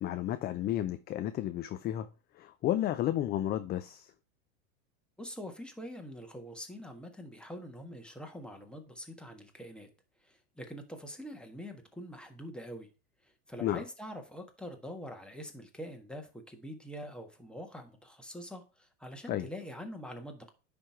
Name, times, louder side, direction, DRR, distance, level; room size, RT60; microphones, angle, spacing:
voice 1, 0.0-2.1 2.4-4.1 13.6-13.8 19.3-19.5, left 12 dB, 25° left, 0.4 m, -32 dB
voice 2, 5.2-9.9 10.2-12.9 13.2-20.5, equal, ahead, 1.4 m, -44 dB
10.0 x 3.4 x 4.4 m
hypercardioid pair, 115°, 39 cm